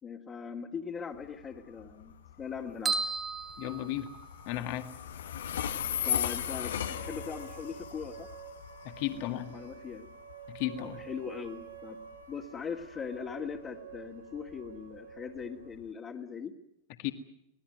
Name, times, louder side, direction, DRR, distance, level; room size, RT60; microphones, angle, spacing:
voice 1, 0.0-3.0 6.0-8.3 9.1-10.1 10.8-12.0 12.3-16.5, left 6 dB, 30° left, -3 dB, 2.3 m, -40 dB
Train, 1.1-15.9, left 9 dB, 75° left, 1.2 m, -39 dB
sound 1, 2.8-4.6, right 4 dB, 20° right, 2.6 m, -34 dB
voice 2, 3.6-4.1 4.5-4.9 8.8-9.5 10.5-11.0 17.0-17.1, left 13 dB, 55° left, 7 dB, 2.0 m, -34 dB
sound 2, 6.8-15.8, right 7 dB, 85° right, 1.8 m, -49 dB
24.5 x 18.5 x 9.5 m, 0.81 s
hypercardioid pair, 95°, 0 cm